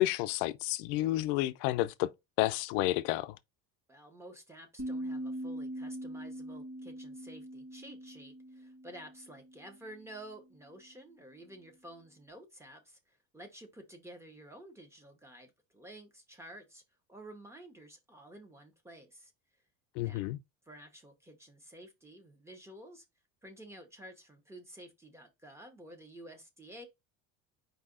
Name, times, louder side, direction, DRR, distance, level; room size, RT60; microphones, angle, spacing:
voice 1, 0.0-2.1 2.4-3.4 20.0-20.4, left 16 dB, 85° left, 0.5 m, -30 dB
voice 2, 3.9-16.8 17.1-19.3 20.0-20.3 20.7-23.0 23.4-26.9, right 1 dB, 5° right, 0.6 m, -51 dB
sound 1, 4.8-9.9, right 1 dB, 25° right, 1.4 m, -42 dB
4.8 x 2.7 x 3.7 m
cardioid pair, 165°, 37 cm